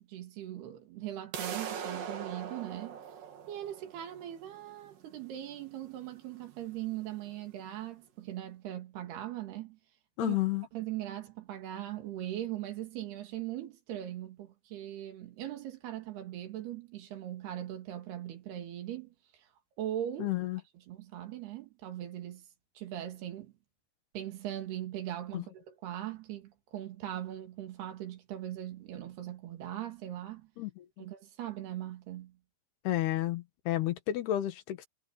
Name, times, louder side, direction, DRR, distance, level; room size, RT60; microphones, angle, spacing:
voice 1, 0.1-3.0 3.5-9.8 10.2-10.4 10.7-19.1 19.8-20.3 20.9-22.5 22.8-23.5 24.1-30.5 31.0-32.4, right 12 dB, 85° right, 4.2 m, -40 dB
sound 1, 1.3-7.3, right 7 dB, 65° right, 3.8 m, -42 dB
voice 2, 10.2-10.7 20.2-20.6 25.3-25.4 30.6-31.1 32.9-34.9, left 14 dB, 85° left, 3.4 m, -31 dB
omnidirectional pair, 4.5 m